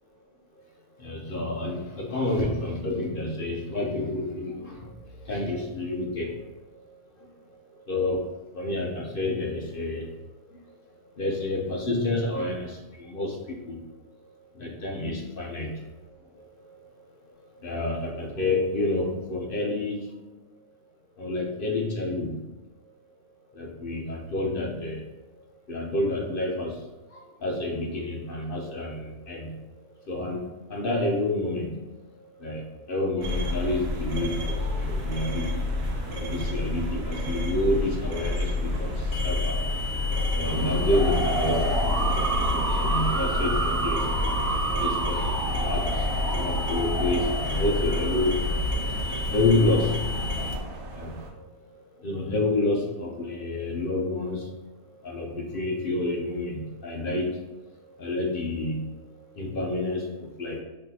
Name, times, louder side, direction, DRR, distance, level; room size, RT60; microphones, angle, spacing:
voice 1, 1.0-6.5 7.2-7.3 7.9-10.2 10.5-10.6 11.2-13.8 14.5-15.9 16.3-16.8 17.4-20.2 21.2-22.5 23.5-25.0 25.7-29.6 30.1-31.9 32.2-39.8 40.3-42.2 42.5-50.3 50.9-51.5 51.9-54.6 55.0-57.4 58.0-60.6, left 2 dB, 55° left, 0 dB, 0.6 m, -29 dB
sound 1, 33.2-50.6, left 2 dB, 55° right, 0.9 m, -29 dB
sound 2, 39.1-50.5, left 3 dB, 90° left, 1.2 m, -36 dB
sound 3, 40.4-51.3, right 2 dB, 75° right, 1.2 m, -30 dB
5.6 x 3.2 x 2.7 m, 1.1 s
omnidirectional pair, 1.6 m